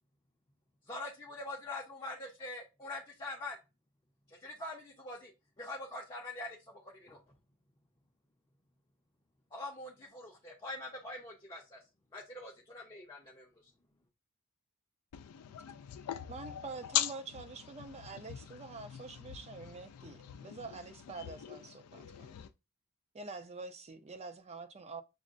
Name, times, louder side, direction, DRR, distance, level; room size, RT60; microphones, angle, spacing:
voice 1, 0.9-3.6 4.3-5.3 5.6-7.2 9.5-11.8 12.1-13.7, left 2 dB, 20° left, 0.6 m, -44 dB
voice 2, 15.1-22.5, left 11 dB, 85° left, 0.3 m, -41 dB
voice 3, 16.3-17.2 17.5-22.3 23.1-25.0, right 3 dB, 30° right, 0.4 m, -46 dB
6.1 x 2.1 x 2.5 m
head